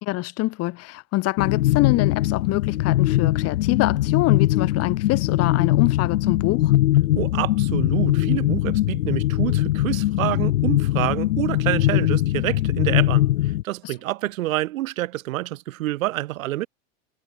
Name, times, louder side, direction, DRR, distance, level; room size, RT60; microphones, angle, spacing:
voice 1, 0.0-6.7 13.8-13.9, left 19 dB, 35° left, 1.5 m, -25 dB
sound 1, 1.4-13.6, left 15 dB, 90° left, 1.4 m, -21 dB
voice 2, 7.1-16.7, right 16 dB, 75° right, 2.8 m, -27 dB
supercardioid pair, 140°, 41 cm